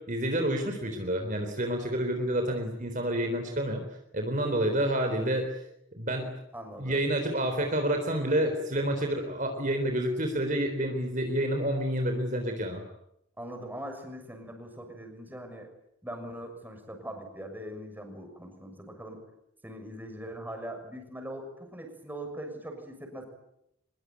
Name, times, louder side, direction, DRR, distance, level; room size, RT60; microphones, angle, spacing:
voice 1, 0.1-3.8 4.1-5.5 6.0-6.4 6.8-12.8, right 1 dB, 40° right, 5 dB, 3.8 m, -29 dB
voice 2, 6.5-7.0 13.4-15.7 16.0-19.2 19.6-23.2, right 1 dB, 10° right, 4 dB, 6.4 m, -41 dB
24.5 x 22.5 x 9.6 m, 0.79 s
head